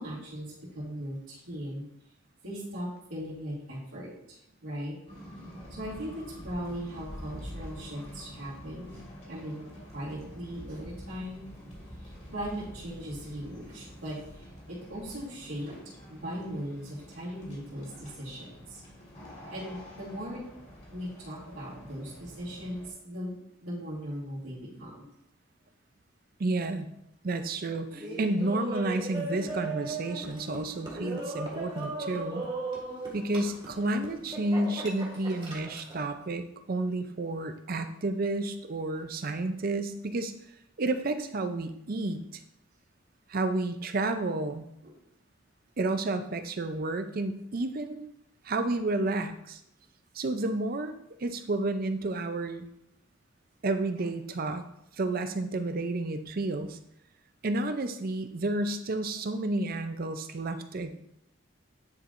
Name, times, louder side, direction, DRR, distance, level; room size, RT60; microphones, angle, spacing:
voice 1, 0.0-1.8 2.4-5.0 5.7-11.4 12.0-18.8 19.5-20.4 20.9-25.1 39.4-39.5 44.8-44.9, equal, 80° right, -9 dB, 2.6 m, -39 dB
sound 1, 5.1-22.9, equal, 35° left, 1.8 m, -47 dB
voice 2, 26.4-26.9 27.2-32.4 33.1-40.3 40.8-42.2 43.3-44.7 45.8-48.1 48.4-49.6 50.1-50.9 51.2-52.6 53.6-54.6 55.0-56.8 57.4-60.9, right 2 dB, 45° right, 9 dB, 0.5 m, -31 dB
Laughter, 27.9-36.0, right 2 dB, 25° right, 1.7 m, -37 dB
9.8 x 4.5 x 2.5 m, 0.78 s
head